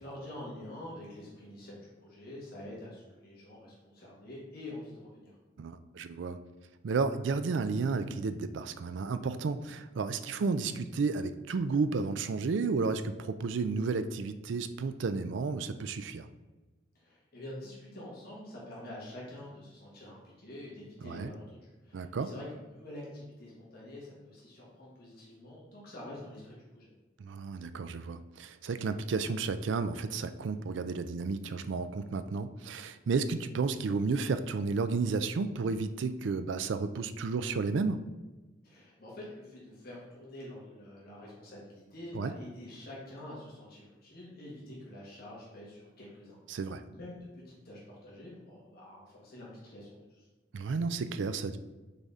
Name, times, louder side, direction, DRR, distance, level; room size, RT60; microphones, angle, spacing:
voice 1, 0.0-5.4 17.0-26.9 38.6-50.3, left 1 dB, 55° left, -6 dB, 1.7 m, -47 dB
voice 2, 5.6-6.4 6.8-16.3 21.0-21.3 21.9-22.3 27.2-38.1 42.1-42.3 46.5-46.8 50.5-51.6, right 4 dB, 70° right, 11 dB, 0.4 m, -32 dB
6.7 x 4.1 x 3.6 m, 1.2 s
head